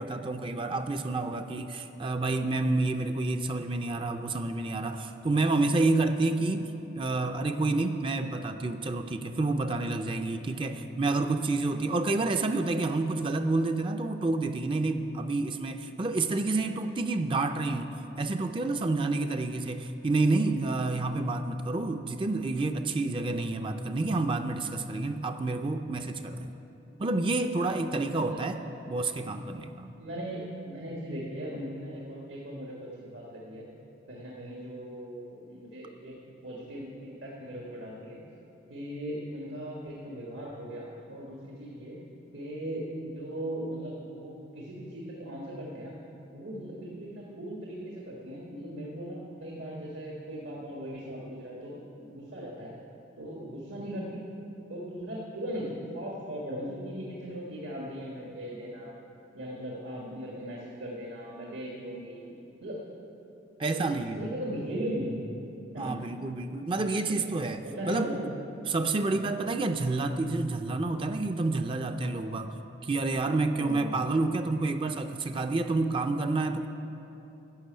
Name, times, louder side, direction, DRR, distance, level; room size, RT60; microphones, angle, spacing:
voice 1, 0.0-26.5 27.0-30.0 63.6-64.3 65.8-68.2 68.7-72.5 72.8-76.7, right 2 dB, 25° right, 7 dB, 0.4 m, -29 dB
voice 2, 28.1-28.4 30.0-33.7 34.1-36.2 36.4-38.2 38.7-42.0 42.3-45.9 46.3-52.7 53.2-54.3 54.7-59.0 59.3-62.8 63.7-63.9 64.2-65.3 65.7-66.0 67.1-67.2 67.6-68.2 73.5-74.0, equal, 80° right, -4 dB, 1.6 m, -38 dB
11.5 x 6.8 x 9.2 m, 3.0 s
head